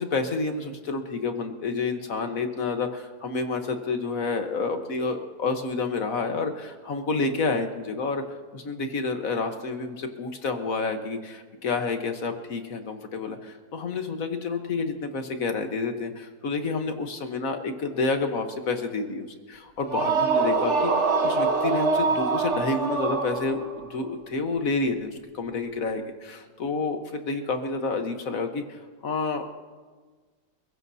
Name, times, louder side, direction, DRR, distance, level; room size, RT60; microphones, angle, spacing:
voice 1, 0.0-8.2 8.5-20.9 21.2-29.5, left 3 dB, 55° left, 6 dB, 1.5 m, -29 dB
sound 1, 19.8-23.8, right 4 dB, 45° right, 1.3 m, -24 dB
28.5 x 15.5 x 2.8 m, 1.4 s
omnidirectional pair, 1.8 m